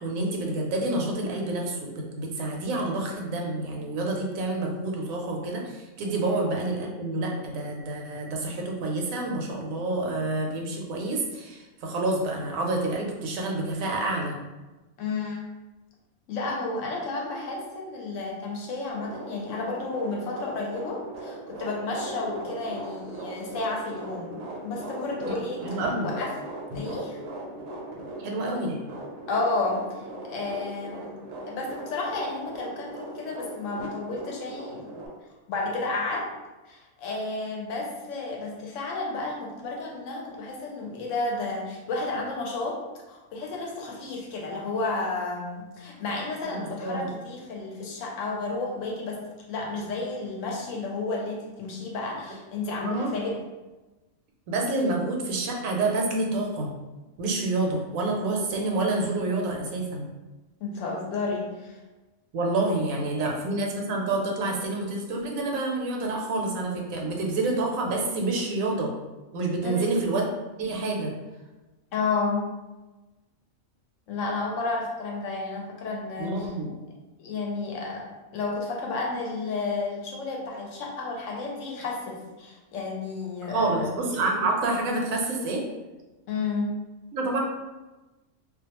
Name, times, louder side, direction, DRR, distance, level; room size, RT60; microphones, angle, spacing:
voice 1, 0.0-14.4 25.3-26.1 28.2-28.8 46.5-47.1 52.7-53.1 54.5-56.7 57.2-60.1 62.3-68.9 69.3-70.3 70.6-71.1 76.2-76.8 83.5-85.6 87.1-87.4, right 2 dB, 85° right, 0 dB, 1.0 m, -28 dB
voice 2, 15.0-15.4 16.3-26.3 26.7-27.2 29.3-30.0 30.3-31.1 31.5-35.0 35.5-36.3 36.6-42.8 43.1-49.2 49.5-53.4 60.6-61.8 63.1-63.3 69.6-69.9 71.9-72.5 74.1-76.3 77.2-78.0 78.3-83.9 86.3-86.7, left 3 dB, 75° left, -1 dB, 0.9 m, -32 dB
sound 1, 18.9-35.1, right 2 dB, 65° right, 0.7 m, -39 dB
2.4 x 2.2 x 2.8 m, 1.1 s
omnidirectional pair, 1.4 m